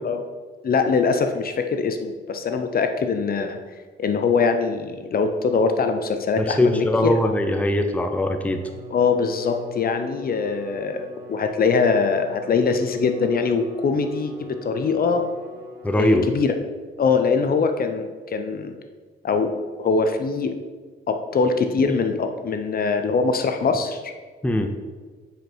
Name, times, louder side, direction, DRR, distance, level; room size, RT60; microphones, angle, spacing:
voice 1, 0.6-3.6 4.0-7.1 8.9-15.3 15.9-16.5 17.0-18.8 19.2-19.5 19.8-20.5 21.1-24.1, left 5 dB, 50° left, 7 dB, 0.8 m, -22 dB
voice 2, 6.4-8.6 15.8-16.3 24.4-24.7, left 1 dB, 5° left, 6 dB, 0.7 m, -21 dB
Bowed string instrument, 8.2-16.5, left 2 dB, 75° right, 1.0 m, -42 dB
8.9 x 5.2 x 4.6 m, 1.4 s
cardioid pair, 90°, 20 cm